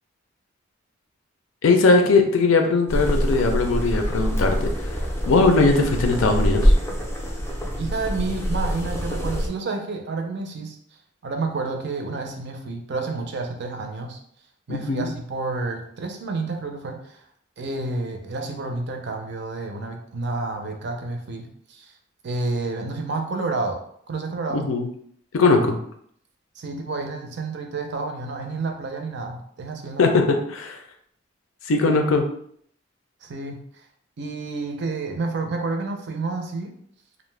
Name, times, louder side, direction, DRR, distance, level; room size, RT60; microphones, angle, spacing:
voice 1, 1.6-4.7 5.2-6.7 14.7-15.1 24.5-24.9 25.3-25.8 30.0-30.2 30.5-30.8 31.7-32.2, left 3 dB, 80° left, 4 dB, 0.5 m, -19 dB
sound 1, 2.9-9.5, equal, 15° left, 0.4 m, -24 dB
voice 2, 7.8-10.8 11.2-14.2 14.7-17.2 17.6-21.9 22.2-23.8 24.1-24.7 26.6-30.2 33.2-33.6 34.2-36.7, right 3 dB, 60° right, 4 dB, 0.5 m, -30 dB
2.4 x 2.1 x 3.2 m, 0.66 s
head